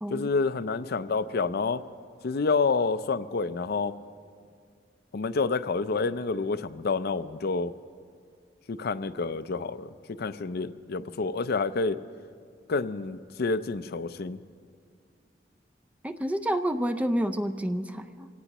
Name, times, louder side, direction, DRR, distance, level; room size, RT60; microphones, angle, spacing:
voice 1, 0.1-1.8 2.2-3.9 5.1-7.7 8.7-12.0 12.7-14.4, left 4 dB, 60° left, 13 dB, 0.5 m, -28 dB
voice 2, 16.0-18.3, equal, 10° right, 7 dB, 0.5 m, -29 dB
25.5 x 18.0 x 3.0 m, 2.2 s
head